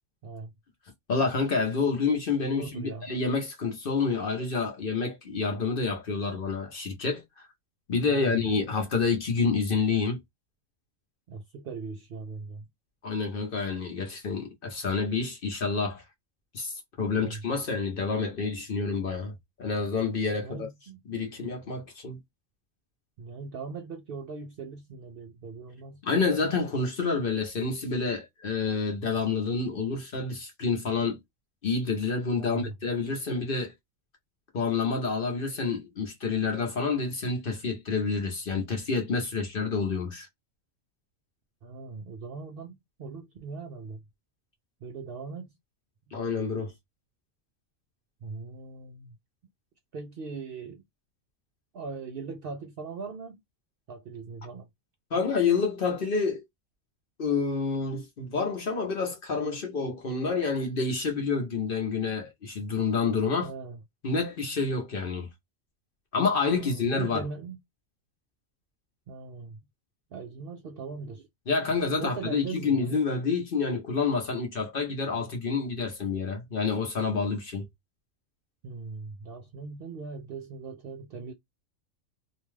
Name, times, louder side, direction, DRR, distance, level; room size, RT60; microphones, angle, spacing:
voice 1, 1.1-7.5 7.9-10.2 13.0-16.0 16.5-20.7 21.1-22.2 26.0-31.2 31.6-33.7 34.5-40.3 46.1-46.7 55.1-56.4 57.2-63.5 64.0-65.3 66.1-67.2 71.5-77.7, left 4 dB, 50° left, 0.8 m, -28 dB
voice 2, 2.5-3.1 8.1-8.4 11.3-12.6 17.1-17.4 20.4-21.0 23.2-26.5 32.4-32.7 41.6-44.0 44.8-45.5 46.1-46.2 48.2-49.1 49.9-50.8 51.7-53.4 53.9-54.7 63.4-63.8 66.5-67.6 69.1-69.6 70.1-71.3 72.0-73.0 78.6-81.3, right 4 dB, 60° right, 0.6 m, -40 dB
2.7 x 2.2 x 3.1 m
omnidirectional pair, 1.4 m